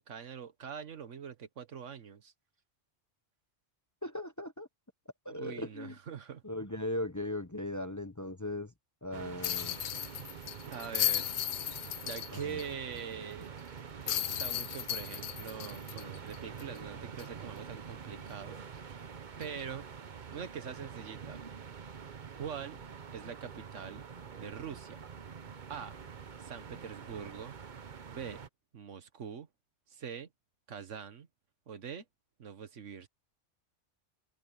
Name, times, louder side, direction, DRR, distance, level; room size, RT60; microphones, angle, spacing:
voice 1, 0.0-2.3 5.3-6.4 10.7-11.3 12.0-13.5 14.0-19.1 19.4-19.9 20.3-21.4 22.4-22.8 23.1-24.0 24.4-25.0 25.7-26.0 26.4-27.6 28.1-28.4 28.7-29.5 29.9-30.3 30.7-31.3 31.7-32.0 32.4-33.1, right 7 dB, 80° right, 1.5 m, -43 dB
voice 2, 4.0-4.7 5.2-6.0 6.4-8.7 9.0-9.8 12.3-12.6, left 1 dB, 15° left, 0.8 m, -38 dB
sound 1, 9.1-28.5, right 6 dB, 45° right, 1.0 m, -46 dB
sound 2, 9.4-12.6 13.0-13.1 14.1-16.8 17.2-17.3 19.4-19.6, left 12 dB, 70° left, 0.9 m, -35 dB
omnidirectional pair, 1.2 m